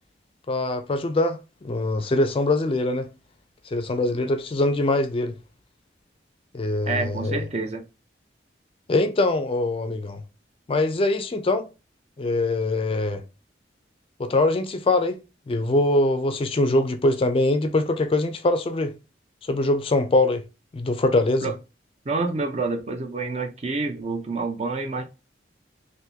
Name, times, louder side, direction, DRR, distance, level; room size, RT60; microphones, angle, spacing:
voice 1, 0.5-3.1 3.7-5.3 6.5-7.4 8.9-10.2 10.7-11.6 12.2-13.2 14.2-15.2 15.5-19.0 19.5-20.4 20.7-21.5, left 2 dB, 30° left, 0.4 m, -23 dB
voice 2, 6.9-7.8 21.4-21.5 22.1-25.0, right 3 dB, 40° right, 0.6 m, -28 dB
3.5 x 2.5 x 2.7 m
head